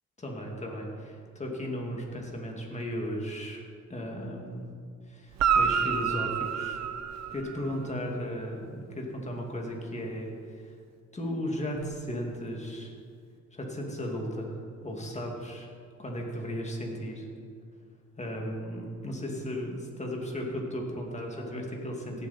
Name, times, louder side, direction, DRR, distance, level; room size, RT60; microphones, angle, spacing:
voice 1, 0.2-3.6 3.9-4.7 5.1-6.8 7.3-10.8 11.1-12.9 13.5-14.6 14.8-15.7 16.0-17.3 18.2-22.3, equal, 25° left, 0 dB, 2.5 m, -35 dB
Guitar, 5.3-7.9 11.8-11.9, right 7 dB, 60° right, 1.0 m, -28 dB
17.0 x 7.6 x 4.4 m, 2.2 s
cardioid pair, 90°, 30 cm